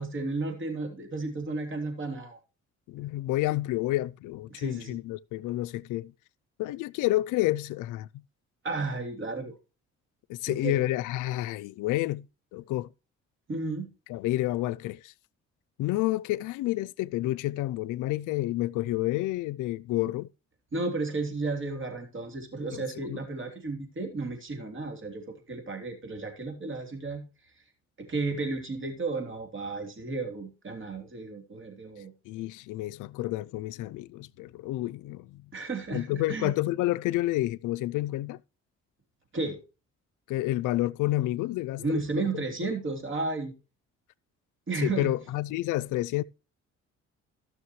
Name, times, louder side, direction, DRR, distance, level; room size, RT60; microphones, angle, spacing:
voice 1, 0.0-2.4 4.5-5.0 8.6-9.5 10.5-10.8 13.5-13.9 20.7-27.2 28.0-32.1 35.5-36.5 39.3-39.6 41.8-43.5 44.7-45.1, right 3 dB, 40° right, 3.3 m, -33 dB
voice 2, 2.9-6.1 6.6-8.1 10.3-12.3 12.5-12.9 14.1-15.1 15.8-20.3 22.7-22.8 23.1-23.2 32.3-35.4 35.9-38.4 40.3-42.4 44.8-46.2, left 16 dB, 90° left, 0.5 m, -29 dB
16.0 x 6.3 x 3.1 m
cardioid pair, 90°, 30 cm